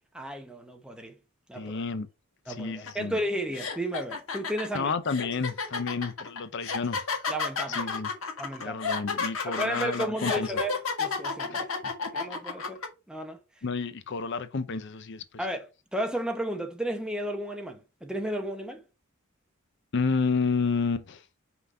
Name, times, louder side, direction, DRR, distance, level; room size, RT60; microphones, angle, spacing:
voice 1, 0.1-1.2 1.5-1.7 2.5-4.9 7.3-8.0 8.4-8.8 9.5-11.7 12.1-13.4 15.4-18.8, right 1 dB, 5° right, 0.9 m, -33 dB
voice 2, 1.5-2.1 2.5-3.2 4.7-7.0 7.8-8.1 8.6-10.6 11.5-11.9 13.6-15.2 19.9-21.2, left 4 dB, 60° left, 0.6 m, -30 dB
sound 1, 2.9-3.0 3.5-12.9, left 5 dB, 90° left, 1.7 m, -31 dB
5.7 x 3.9 x 5.5 m
head